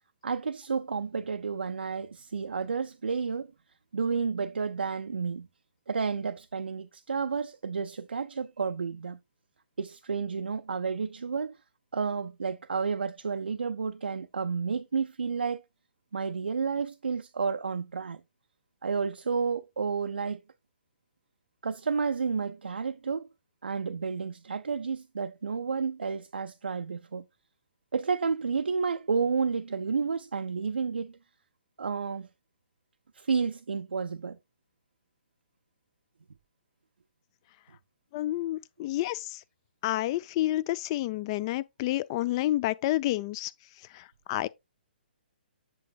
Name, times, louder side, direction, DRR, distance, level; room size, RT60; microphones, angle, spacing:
voice 1, 0.2-3.5 3.9-5.5 5.9-9.2 9.8-11.6 11.9-15.6 16.1-18.2 18.8-20.4 21.6-23.3 23.6-27.3 27.9-31.2 31.8-32.3 33.1-34.4, right 5 dB, 75° right, 0.4 m, -31 dB
voice 2, 38.1-39.4 39.8-43.5 43.9-44.5, left 15 dB, 30° left, 0.3 m, -29 dB
7.6 x 6.9 x 2.3 m
figure-of-eight pair, 130°, 6 cm